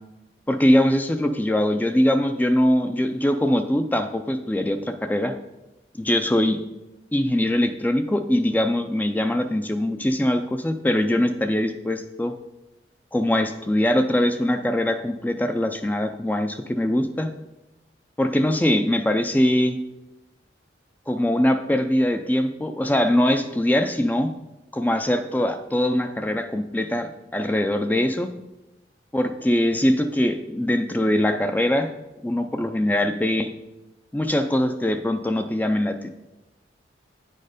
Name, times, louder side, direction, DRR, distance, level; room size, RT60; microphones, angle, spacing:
voice 1, 0.5-5.3 6.0-6.6 7.1-12.3 13.1-17.3 18.2-19.8 21.1-24.3 24.7-28.3 29.1-31.9 32.2-33.5 34.1-36.1, left 1 dB, 10° left, 8 dB, 0.3 m, -22 dB
9.2 x 4.3 x 5.0 m, 0.99 s
head